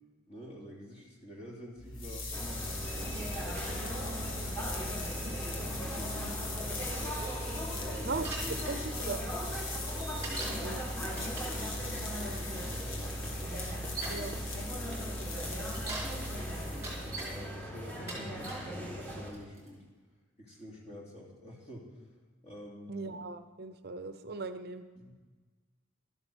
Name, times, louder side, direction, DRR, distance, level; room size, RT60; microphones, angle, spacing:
voice 1, 0.3-2.3 2.9-4.4 5.3-7.3 7.8-8.1 8.4-8.9 10.3-13.3 14.0-15.3 16.1-16.3 16.6-19.8 20.4-22.0 22.4-23.1 25.0-25.1, equal, 30° left, -3 dB, 3.0 m, -49 dB
sound 1, 1.8-17.5, left 1 dB, 75° left, 1.6 m, -39 dB
sound 2, 2.3-19.3, equal, 10° left, 1.8 m, -40 dB
Bicycle, 8.2-8.8 10.2-10.6 11.1-11.6 12.7-12.8 13.6-14.3 15.6-16.1 16.6-17.3 17.9-18.7 19.3-19.7, right 2 dB, 15° right, 3.3 m, -40 dB
voice 2, 8.7-9.2 10.6-10.8 14.1-14.4 22.9-24.8, right 3 dB, 50° right, 10 dB, 0.6 m, -38 dB
12.0 x 11.0 x 6.2 m, 1.4 s
head